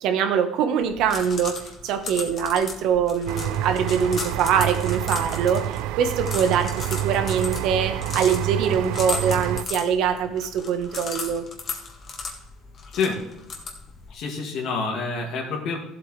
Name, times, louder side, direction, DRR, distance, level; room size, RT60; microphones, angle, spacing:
voice 1, 0.0-1.5 1.8-11.4, right 7 dB, 65° right, 7 dB, 1.3 m, -23 dB
sound 1, 0.8-14.1, left 4 dB, 35° left, 1.7 m, -36 dB
sound 2, 3.3-9.6, right 13 dB, 85° right, 0.4 m, -28 dB
voice 2, 14.1-15.8, left 4 dB, 60° left, -1 dB, 2.3 m, -27 dB
14.5 x 7.9 x 3.3 m, 0.85 s
cardioid pair, 145°, 0 cm